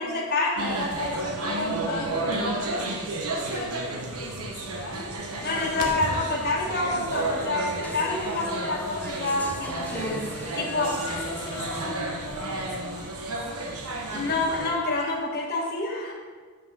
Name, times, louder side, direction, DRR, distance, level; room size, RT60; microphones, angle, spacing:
voice 1, 0.0-2.6 3.4-3.6 5.4-10.9 14.1-16.1, left 2 dB, 45° left, -3 dB, 1.3 m, -28 dB
sound 1, 0.6-14.7, right 2 dB, 75° right, 1.1 m, -32 dB
voice 2, 1.9-2.9 3.5-5.2 10.9-13.1, left 2 dB, 80° left, -1 dB, 1.5 m, -39 dB
sound 2, 5.5-12.8, left 1 dB, 5° left, 0.4 m, -41 dB
5.9 x 5.9 x 6.1 m, 1.5 s
head